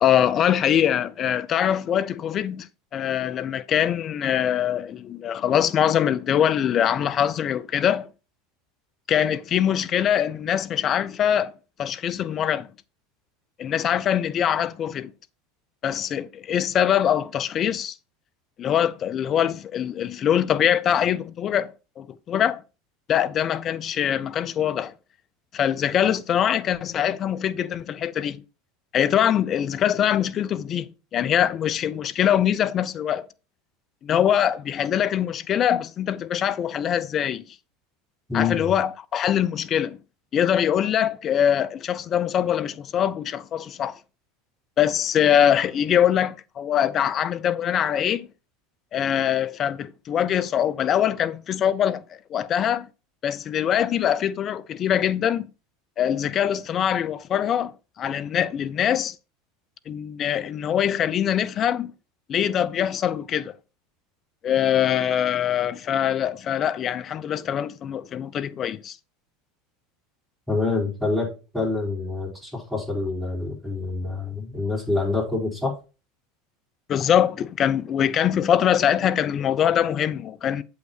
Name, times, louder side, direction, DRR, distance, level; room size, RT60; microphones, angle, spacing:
voice 1, 0.0-2.7 2.9-8.1 9.1-11.5 11.8-12.7 13.6-15.1 15.8-18.0 18.6-22.6 23.1-24.9 25.5-28.4 28.9-33.3 34.0-37.4 38.3-40.0 40.3-43.9 44.8-48.3 48.9-52.0 52.3-52.9 53.2-55.5 56.0-57.7 58.0-59.2 59.9-61.9 62.3-63.5 64.4-69.0 76.9-80.6, left 9 dB, 35° left, 0.5 m, -23 dB
voice 2, 38.3-38.7 70.5-75.7, left 3 dB, 5° right, 4.8 m, -26 dB
7.7 x 5.7 x 4.3 m
figure-of-eight pair, 75°, 0 cm